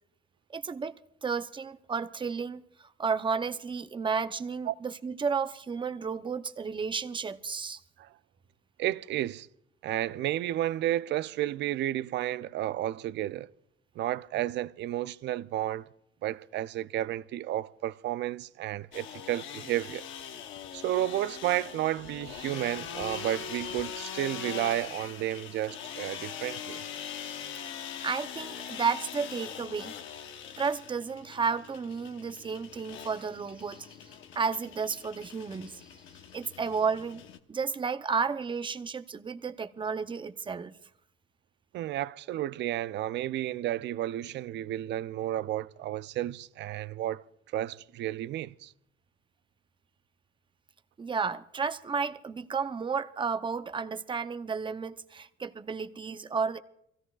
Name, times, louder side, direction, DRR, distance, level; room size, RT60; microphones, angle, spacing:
voice 1, 0.5-0.9 1.2-7.8 27.8-29.9 30.6-34.0 34.3-35.9 36.3-37.2 37.5-40.8 51.0-56.6, right 5 dB, 25° right, 0.7 m, -32 dB
voice 2, 8.8-9.5 9.8-13.5 14.0-15.9 16.2-20.1 20.7-26.8 41.7-47.2 47.5-48.7, right 13 dB, 65° right, 0.4 m, -32 dB
sound 1, 18.9-37.4, left 8 dB, 75° left, 1.0 m, -42 dB
24.5 x 16.0 x 2.4 m
cardioid pair, 95°, 20 cm